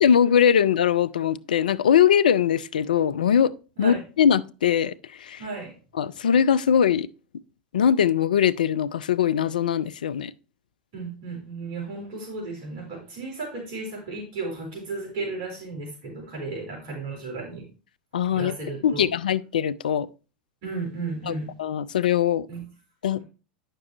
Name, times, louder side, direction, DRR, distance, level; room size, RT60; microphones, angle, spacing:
voice 1, 0.0-3.5 3.8-5.4 6.0-7.1 7.7-10.3 18.1-18.6 18.8-20.1 21.3-22.5 23.0-23.2, left 8 dB, 70° left, 0.4 m, -21 dB
voice 2, 5.4-5.7 10.9-17.6 18.3-19.0 20.6-21.5 22.5-22.6 23.2-23.3, right 3 dB, 50° right, 4.1 m, -34 dB
9.6 x 6.7 x 3.0 m
figure-of-eight pair, 85°, 5 cm